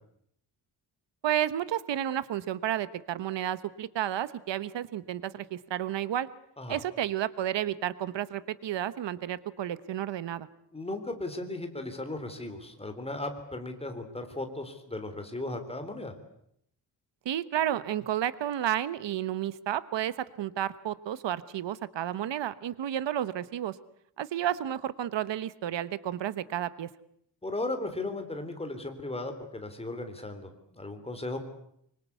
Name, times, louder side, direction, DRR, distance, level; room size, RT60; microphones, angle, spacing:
voice 1, 1.2-6.3 6.7-10.5 17.2-23.8 24.2-26.9, right 11 dB, 80° right, 15 dB, 1.2 m, -31 dB
voice 2, 10.7-16.1 27.4-31.5, left 2 dB, 15° left, 6 dB, 3.6 m, -36 dB
25.5 x 25.0 x 8.3 m, 0.72 s
wide cardioid pair, 155°, 43 cm